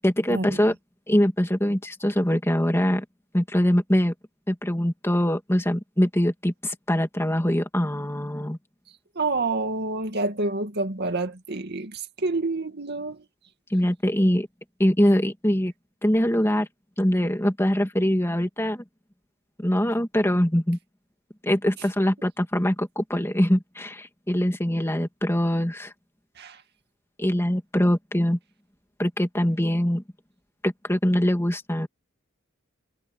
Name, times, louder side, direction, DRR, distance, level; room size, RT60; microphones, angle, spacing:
voice 1, 0.0-0.7 1.1-3.0 3.3-4.1 4.5-8.6 13.7-14.5 14.8-15.7 16.0-16.7 17.0-18.8 19.6-20.8 21.4-25.9 27.2-28.4 29.0-30.0 30.6-31.9, equal, 10° left, 2.4 m, -23 dB
voice 2, 9.2-13.2 26.4-26.6, right 3 dB, 50° right, 2.3 m, -28 dB
head